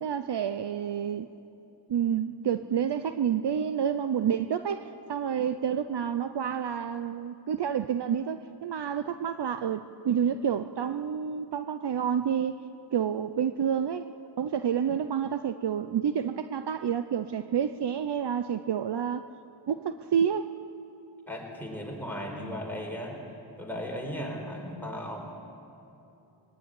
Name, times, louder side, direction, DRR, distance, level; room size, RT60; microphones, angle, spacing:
voice 1, 0.0-1.3 1.9-12.6 12.9-14.1 14.4-19.3 19.7-20.5, right 8 dB, 65° right, 10 dB, 0.7 m, -29 dB
voice 2, 21.3-23.2 23.6-25.2, equal, 5° left, -1 dB, 4.5 m, -36 dB
22.5 x 16.0 x 10.0 m, 2.9 s
wide cardioid pair, 120°, 44 cm